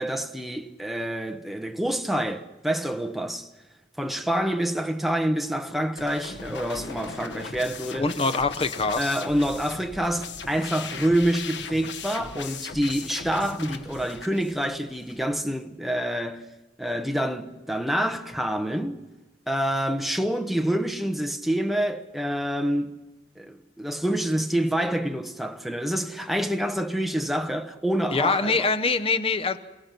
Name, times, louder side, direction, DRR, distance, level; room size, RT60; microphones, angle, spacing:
voice 1, 0.0-3.5 4.0-8.1 9.0-16.5 16.8-19.0 19.5-23.0 23.4-28.7, right 1 dB, ahead, 1.0 m, -27 dB
sound 1, 6.0-15.2, left 5 dB, 80° left, 1.3 m, -38 dB
voice 2, 8.0-9.2 28.1-29.6, left 3 dB, 30° left, 0.9 m, -24 dB
28.0 x 17.0 x 6.0 m
head